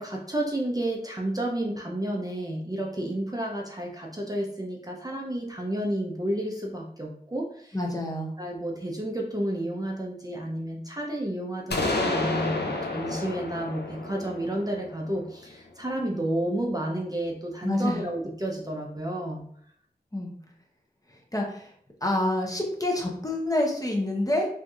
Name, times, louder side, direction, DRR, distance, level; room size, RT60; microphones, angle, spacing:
voice 1, 0.0-7.8 8.4-19.4, right 1 dB, 20° right, -1 dB, 0.4 m, -31 dB
voice 2, 7.7-8.3 17.6-18.1 20.1-20.3 21.1-21.7 22.0-24.5, left 1 dB, 20° left, 0 dB, 0.7 m, -27 dB
sound 1, 11.7-15.5, left 2 dB, 80° left, 0.5 m, -30 dB
3.2 x 2.6 x 2.3 m, 0.63 s
wide cardioid pair, 45°, 17 cm